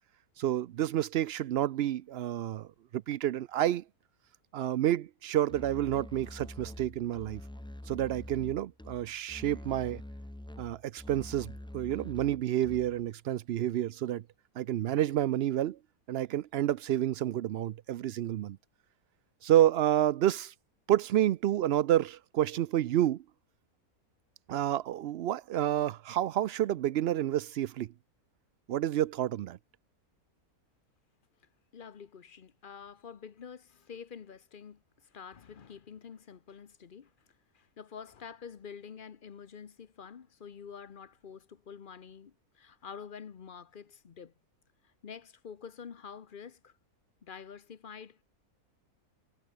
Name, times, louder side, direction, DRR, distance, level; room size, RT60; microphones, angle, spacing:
voice 1, 0.4-2.7 2.9-3.8 4.5-7.4 7.9-10.0 10.6-14.2 14.6-15.8 16.1-18.6 19.4-20.5 20.9-23.2 24.5-27.9 28.7-29.6, right 12 dB, 80° right, 0.5 m, -29 dB
Musical instrument, 5.5-13.1, left 1 dB, 5° left, 0.9 m, -46 dB
voice 2, 31.7-37.3 37.5-44.3 44.8-46.8 47.2-48.2, left 6 dB, 40° left, 0.8 m, -47 dB
omnidirectional pair, 1.6 m